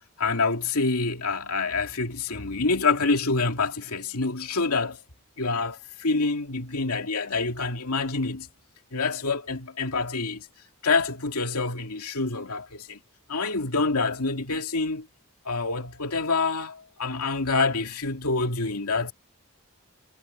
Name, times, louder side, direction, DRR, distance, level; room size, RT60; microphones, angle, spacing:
voice 1, 0.2-5.0 5.4-8.5 8.9-10.5 10.8-13.0 13.3-15.1 15.4-19.1, left 3 dB, 90° left, 2.4 m, -27 dB
head